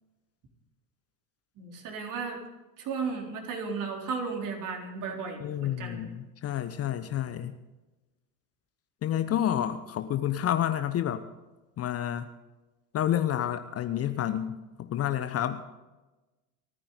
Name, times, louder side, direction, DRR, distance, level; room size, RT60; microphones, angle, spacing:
voice 1, 1.6-2.4 2.8-6.1, right 5 dB, 40° right, 1 dB, 3.9 m, -35 dB
voice 2, 5.4-7.5 9.0-11.2 11.8-12.3 12.9-15.6, left 11 dB, 30° left, 10 dB, 0.9 m, -29 dB
30.0 x 10.0 x 4.1 m, 1.1 s
figure-of-eight pair, 80°, 48 cm